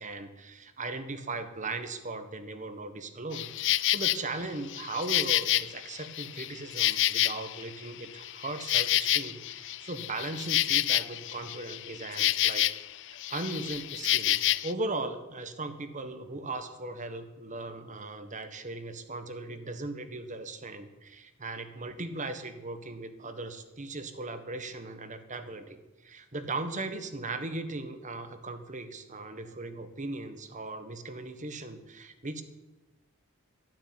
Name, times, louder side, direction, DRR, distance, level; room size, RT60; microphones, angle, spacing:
voice 1, 0.0-12.7 13.1-32.4, right 2 dB, 35° right, 10 dB, 1.5 m, -38 dB
Insect, 3.3-4.2 4.7-7.7 8.0-12.9 13.2-14.7, left 14 dB, 60° left, 0.5 m, -28 dB
12.5 x 12.0 x 9.4 m, 1.0 s
head